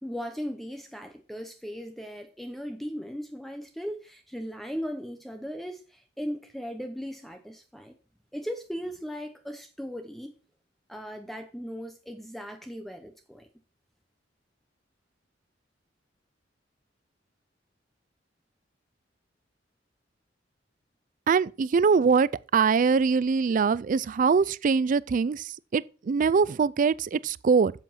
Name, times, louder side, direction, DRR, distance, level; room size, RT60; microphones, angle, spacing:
voice 1, 0.0-8.0 8.3-10.3 10.9-13.5, equal, ahead, 0.8 m, -37 dB
voice 2, 21.3-27.7, right 5 dB, 45° right, 0.4 m, -23 dB
7.7 x 7.5 x 5.7 m
head